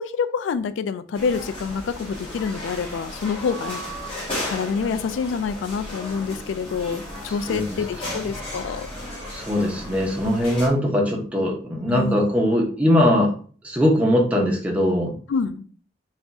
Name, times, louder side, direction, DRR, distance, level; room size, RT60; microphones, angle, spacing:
voice 1, 0.0-3.8 4.4-8.9 11.9-12.2 15.3-15.6, left 5 dB, 90° left, 13 dB, 0.3 m, -27 dB
sound 1, 1.1-10.7, left 1 dB, 30° left, 1.3 m, -34 dB
voice 2, 9.3-13.3 13.6-15.1, left 1 dB, 10° right, 0 dB, 0.8 m, -21 dB
3.4 x 2.4 x 4.1 m, 0.42 s
head